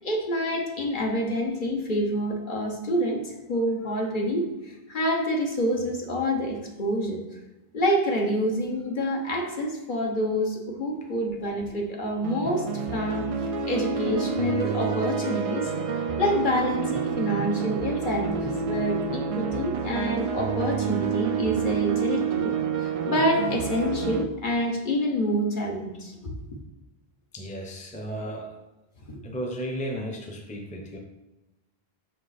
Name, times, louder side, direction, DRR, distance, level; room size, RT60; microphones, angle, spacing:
voice 1, 0.0-7.2 7.7-12.7 12.9-13.3 13.7-15.7 16.2-26.3, equal, 55° left, 0 dB, 1.2 m, -27 dB
sound 1, 12.2-24.2, right 6 dB, 50° right, 0.4 m, -28 dB
voice 2, 27.3-28.6 29.2-31.0, equal, 10° left, 2 dB, 0.7 m, -34 dB
5.9 x 5.0 x 4.1 m, 1.0 s
omnidirectional pair, 1.0 m